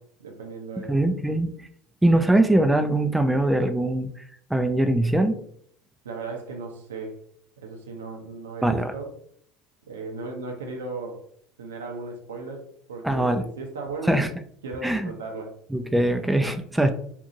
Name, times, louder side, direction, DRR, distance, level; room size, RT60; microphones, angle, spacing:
voice 1, 0.0-1.0 6.0-7.2 7.6-9.1 9.9-11.3 11.6-14.2 14.6-15.6, right 3 dB, 85° right, 3 dB, 0.6 m, -36 dB
voice 2, 0.9-1.5 2.0-4.1 4.5-5.4 8.6-8.9 13.0-13.4 14.1-14.3 14.8-15.1 15.7-16.9, right 1 dB, 5° right, 8 dB, 0.3 m, -22 dB
2.7 x 2.5 x 2.6 m, 0.63 s
hypercardioid pair, 75°, 0 cm